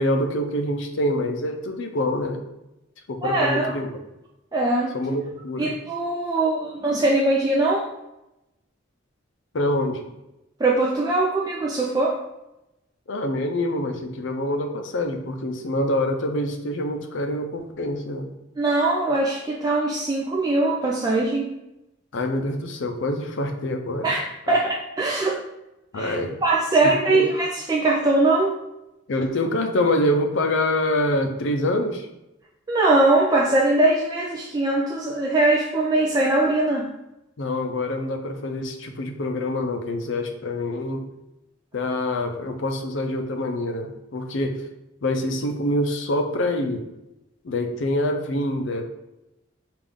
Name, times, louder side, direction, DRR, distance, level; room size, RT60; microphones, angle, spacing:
voice 1, 0.0-2.4 3.1-4.0 4.9-5.7 9.5-10.1 13.1-18.3 22.1-24.1 24.5-24.6 25.9-26.4 26.8-27.3 29.1-32.1 37.4-41.0 41.7-44.6 45.0-46.9 47.4-48.8, left 1 dB, 65° left, 5 dB, 0.5 m, -25 dB
voice 2, 3.2-3.8 4.5-5.0 5.6-7.9 10.6-12.2 18.6-21.5 24.0-25.4 26.0-26.1 26.4-28.6 32.7-36.9, right 2 dB, 20° right, -4 dB, 0.3 m, -21 dB
5.3 x 2.5 x 3.5 m, 0.91 s
head